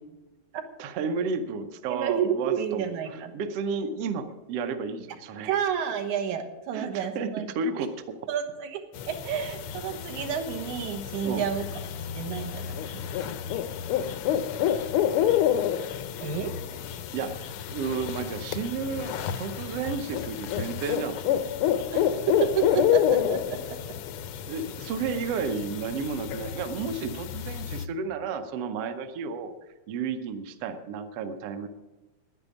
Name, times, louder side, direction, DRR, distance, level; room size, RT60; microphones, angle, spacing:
voice 1, 0.8-5.5 6.7-8.2 11.2-11.4 17.1-21.4 24.5-29.5 29.9-31.7, right 5 dB, 65° right, 7 dB, 1.6 m, -32 dB
voice 2, 1.9-3.3 5.5-7.5 8.3-8.8 9.1-11.7 12.1-13.0 16.2-16.8 21.9-22.1 22.4-23.6, right 8 dB, 85° right, 6 dB, 2.8 m, -30 dB
sound 1, 8.9-27.8, left 10 dB, 80° left, 1.2 m, -29 dB
10.5 x 10.5 x 8.4 m, 1.1 s
omnidirectional pair, 3.3 m